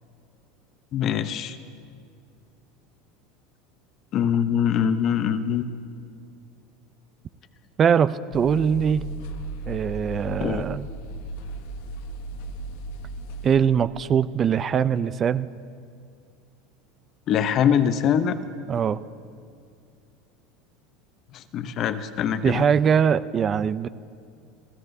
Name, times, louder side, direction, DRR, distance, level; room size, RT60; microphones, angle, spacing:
voice 1, 0.9-1.6 4.1-5.6 10.4-10.6 17.3-18.4 21.5-22.6, left 8 dB, 45° left, 11 dB, 0.7 m, -23 dB
voice 2, 7.8-9.1 9.7-10.9 13.4-15.5 18.7-19.0 22.4-23.9, right 7 dB, 30° right, 15 dB, 0.4 m, -22 dB
sound 1, 8.3-13.6, right 1 dB, 75° left, 1.0 m, -36 dB
29.0 x 15.5 x 2.7 m, 2.3 s
supercardioid pair, 125°, 0 cm